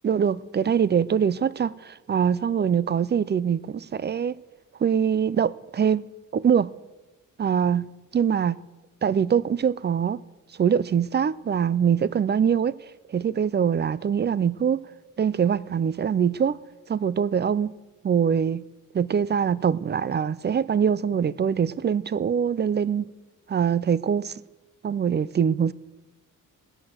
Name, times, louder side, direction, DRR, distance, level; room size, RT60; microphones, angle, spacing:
voice 1, 0.0-4.3 4.8-6.0 6.3-6.7 7.4-8.6 9.0-10.2 10.6-12.8 13.1-14.8 15.2-16.6 16.9-17.7 18.0-18.6 18.9-23.1 23.5-24.4 24.8-25.7, right 7 dB, 30° right, 0.4 m, -23 dB
16.0 x 11.0 x 7.7 m
wide cardioid pair, 170°, 34 cm